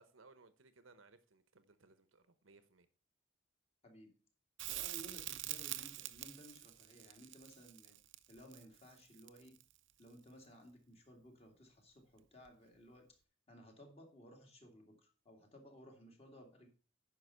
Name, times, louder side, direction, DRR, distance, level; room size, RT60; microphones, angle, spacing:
voice 1, 0.0-2.9, right 3 dB, 85° right, 11 dB, 1.0 m, -64 dB
Crackle, 4.6-9.7 12.5-12.6, right 15 dB, 65° right, 0.6 m, -45 dB
voice 2, 4.7-8.0 8.3-9.6 10.0-13.1 13.5-16.7, equal, 30° left, 2 dB, 2.4 m, -58 dB
9.7 x 5.8 x 5.6 m, 0.38 s
head